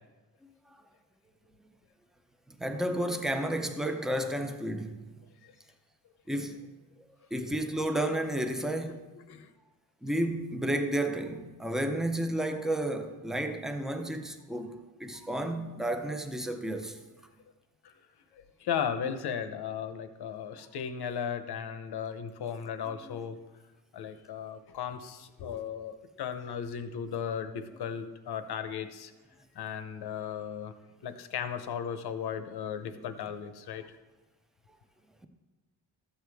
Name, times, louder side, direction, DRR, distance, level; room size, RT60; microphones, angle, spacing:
voice 1, 2.6-5.1 6.3-6.7 7.3-9.0 10.0-17.0, right 1 dB, ahead, 0.4 m, -32 dB
voice 2, 18.6-23.4 23.9-29.1 29.5-30.7 31.0-33.9, left 7 dB, 75° left, 0.8 m, -36 dB
13.0 x 7.9 x 3.4 m
wide cardioid pair, 175°, 39 cm